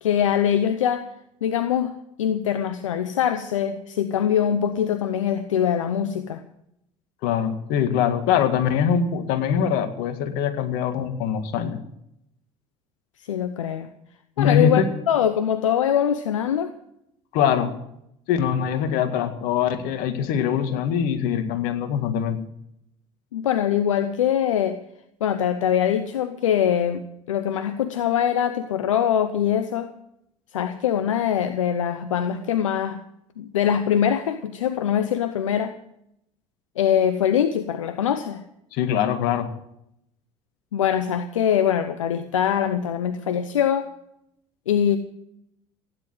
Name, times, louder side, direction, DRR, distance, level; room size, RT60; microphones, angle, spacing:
voice 1, 0.0-1.1 1.4-6.4 13.2-13.9 14.4-16.7 23.3-24.8 25.2-29.9 30.5-33.0 33.4-35.7 36.8-38.4 40.7-43.9 44.7-45.0, left 9 dB, 85° left, 10 dB, 0.8 m, -23 dB
voice 2, 7.2-11.8 14.4-14.9 17.3-17.7 18.3-22.4 38.7-39.5, left 8 dB, 65° left, 8 dB, 2.0 m, -23 dB
16.0 x 10.0 x 7.7 m, 0.78 s
hypercardioid pair, 65°, 16 cm